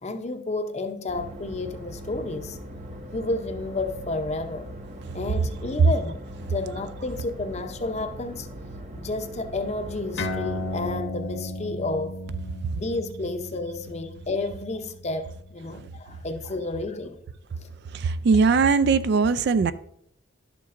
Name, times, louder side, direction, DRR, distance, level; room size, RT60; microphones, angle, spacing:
voice 1, 0.0-2.6 3.1-4.7 5.1-6.2 6.5-8.5 9.0-12.2 12.7-17.2 17.6-17.7, left 2 dB, 35° left, 0.6 m, -31 dB
sound 1, 1.1-11.0, equal, 35° right, 0.7 m, -40 dB
sound 2, 10.2-17.1, left 1 dB, 65° left, 0.8 m, -36 dB
voice 2, 17.9-19.7, right 4 dB, 55° right, 0.3 m, -20 dB
11.5 x 6.7 x 2.5 m
head